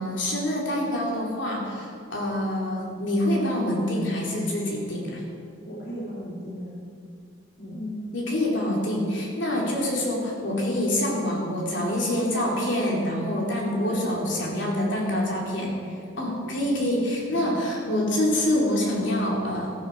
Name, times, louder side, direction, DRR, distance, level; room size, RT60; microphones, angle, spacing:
voice 1, 0.0-5.2 7.7-15.7 16.2-19.7, left 1 dB, 75° left, -2 dB, 2.9 m, -26 dB
voice 2, 5.6-6.7 7.6-7.8 9.5-9.7 13.8-14.3 16.4-16.9 17.3-17.6, equal, 55° left, -6 dB, 2.2 m, -37 dB
14.0 x 12.0 x 4.5 m, 2.3 s
head